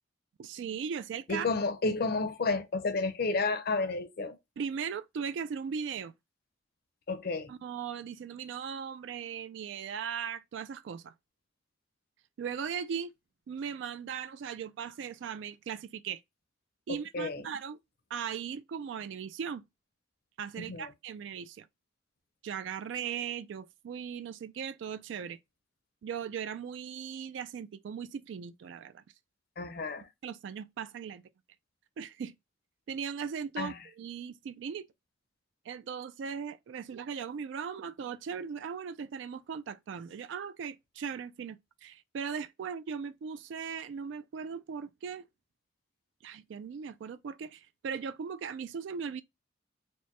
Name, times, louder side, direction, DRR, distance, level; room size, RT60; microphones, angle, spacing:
voice 1, 0.4-1.5 4.6-6.1 7.5-11.1 12.4-13.1 13.5-16.2 16.9-17.8 18.1-19.6 20.4-21.7 22.4-25.4 26.0-29.0 30.2-31.2 32.0-32.4 32.9-34.9 35.7-45.3 46.2-49.2, right 7 dB, 70° right, 0.3 m, -38 dB
voice 2, 1.3-4.4 7.1-7.5 16.9-17.5 20.6-20.9 29.6-30.1 33.6-33.9, left 3 dB, 55° left, 0.6 m, -31 dB
4.4 x 2.1 x 3.1 m
head